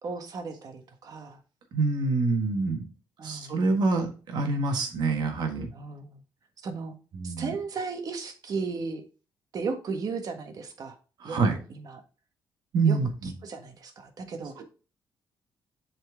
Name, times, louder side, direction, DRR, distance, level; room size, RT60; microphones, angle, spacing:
voice 1, 0.0-1.4 3.2-3.7 5.7-6.2 6.6-6.9 7.2-9.0 9.5-11.0 11.2-12.0 12.8-13.0 13.2-14.6, right 4 dB, 55° right, 6 dB, 1.5 m, -35 dB
voice 2, 1.7-2.9 3.2-5.7 7.1-7.5 11.2-11.6 12.7-13.3 14.6-14.7, right 3 dB, 70° right, 4 dB, 1.6 m, -26 dB
7.8 x 4.4 x 3.6 m, 0.35 s
cardioid pair, 100°, 8 cm